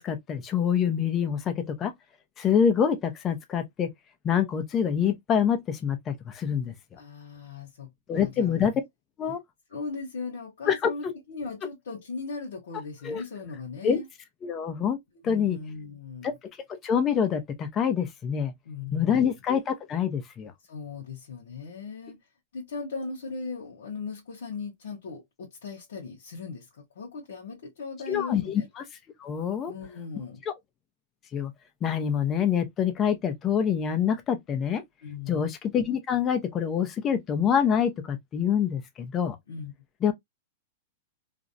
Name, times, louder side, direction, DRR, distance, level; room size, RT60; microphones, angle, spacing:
voice 1, 0.0-1.9 2.4-3.9 4.2-7.0 8.1-8.7 9.2-9.4 10.7-11.1 13.0-13.2 13.8-14.0 14.4-15.0 15.2-15.6 16.2-16.3 16.8-18.5 18.9-20.5 28.1-28.8 29.2-29.7 30.4-30.5 31.3-31.5 31.8-34.8 35.3-39.4 40.0-40.1, left 8 dB, 25° left, 0.5 m, -26 dB
voice 2, 7.0-8.6 9.7-14.1 15.2-16.3 18.7-19.3 20.7-22.2 22.5-26.7 27.0-28.7 29.7-30.4 35.0-35.4 39.5-39.7, left 4 dB, 85° left, 0.8 m, -38 dB
2.5 x 2.0 x 2.5 m
hypercardioid pair, 140°, 0 cm